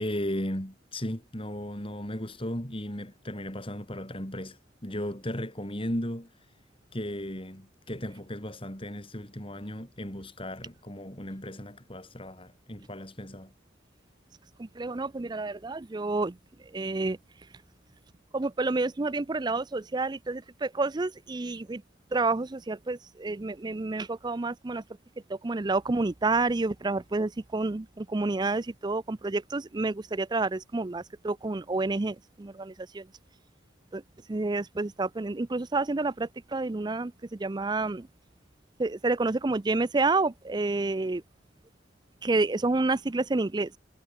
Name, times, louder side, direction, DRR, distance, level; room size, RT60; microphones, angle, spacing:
voice 1, 0.0-6.3 6.9-13.5, left 1 dB, 30° left, 5.2 m, -36 dB
voice 2, 14.6-16.3 16.7-17.2 18.3-21.8 22.1-24.8 25.3-33.0 33.9-34.0 34.3-37.1 37.4-38.1 38.8-41.2 42.2-43.7, right 3 dB, 20° right, 0.5 m, -29 dB
head